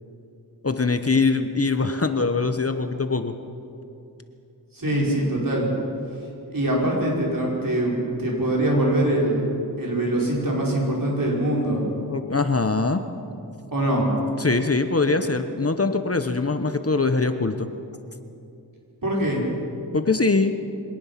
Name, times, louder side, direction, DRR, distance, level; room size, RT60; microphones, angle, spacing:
voice 1, 0.6-3.4 12.1-13.0 14.4-17.7 19.9-20.6, left 3 dB, 35° left, 8 dB, 1.0 m, -22 dB
voice 2, 4.7-5.7 6.5-9.5 9.8-11.8 13.7-14.1 19.0-19.4, right 1 dB, 55° right, -3 dB, 5.8 m, -23 dB
24.5 x 18.0 x 5.9 m, 2.6 s
wide cardioid pair, 60°, 40 cm